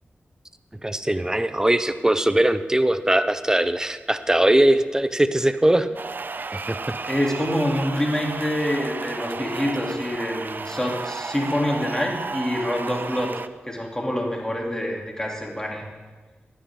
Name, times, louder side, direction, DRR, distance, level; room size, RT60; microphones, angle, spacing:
voice 1, 0.8-5.9 6.5-7.0, right 1 dB, 15° right, 11 dB, 0.8 m, -20 dB
sound 1, 5.9-13.5, right 4 dB, 50° right, 0.5 m, -33 dB
voice 2, 7.0-13.3 13.6-15.8, left 1 dB, 15° left, -1 dB, 3.1 m, -26 dB
16.0 x 10.5 x 3.8 m, 1.3 s
cardioid pair, 45°, 4 cm